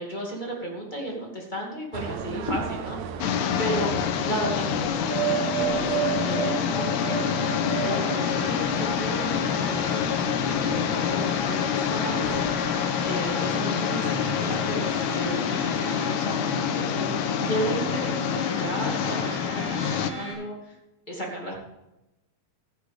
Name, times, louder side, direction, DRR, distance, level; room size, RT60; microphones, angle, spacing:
voice 1, 0.0-7.5 7.8-20.8 21.1-21.6, right 1 dB, 15° left, -2 dB, 1.9 m, -34 dB
sound 1, 1.9-14.2 14.5-14.9, right 10 dB, 75° right, 1.8 m, -34 dB
sound 2, 3.2-20.1, left 8 dB, 80° left, 2.1 m, -27 dB
sound 3, 5.3-20.3, left 1 dB, 30° right, 4.3 m, -35 dB
15.0 x 10.0 x 3.6 m, 0.94 s
omnidirectional pair, 3.7 m